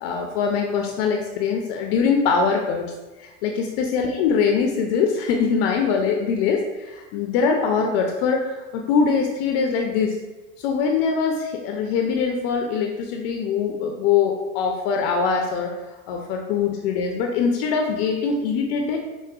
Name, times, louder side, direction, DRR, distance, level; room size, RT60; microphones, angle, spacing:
voice 1, 0.0-2.9 3.2-10.1 10.6-15.8 16.1-19.0, left 5 dB, 50° left, 2 dB, 0.5 m, -23 dB
4.7 x 2.1 x 2.3 m, 1.1 s
hypercardioid pair, 100°, 38 cm